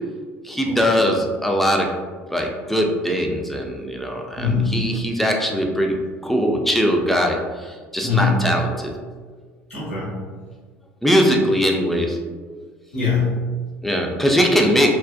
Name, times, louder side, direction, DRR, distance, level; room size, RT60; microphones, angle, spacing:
voice 1, 0.4-1.9 2.3-8.9 11.0-12.2 13.8-14.9, equal, 5° left, 1 dB, 0.4 m, -21 dB
voice 2, 4.4-4.9 8.0-8.5 9.7-10.2 12.9-13.6, left 4 dB, 85° left, -8 dB, 0.9 m, -22 dB
2.5 x 2.1 x 2.4 m, 1.5 s
figure-of-eight pair, 65°, 7 cm